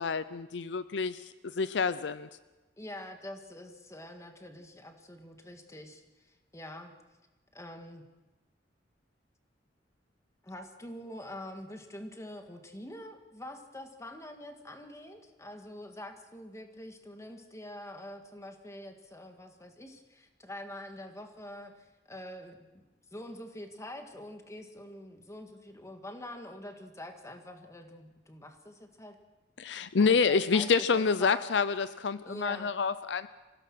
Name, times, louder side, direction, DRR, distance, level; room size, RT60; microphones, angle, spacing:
voice 1, 0.0-2.3 29.6-33.3, left 5 dB, 70° left, 14 dB, 0.6 m, -28 dB
voice 2, 2.8-6.0 6.5-6.9 7.5-8.0 10.4-21.7 22.1-22.8 23.1-29.2 30.0-31.4 32.3-32.7, left 1 dB, 15° left, 5 dB, 1.9 m, -45 dB
26.5 x 16.5 x 6.2 m, 1.1 s
head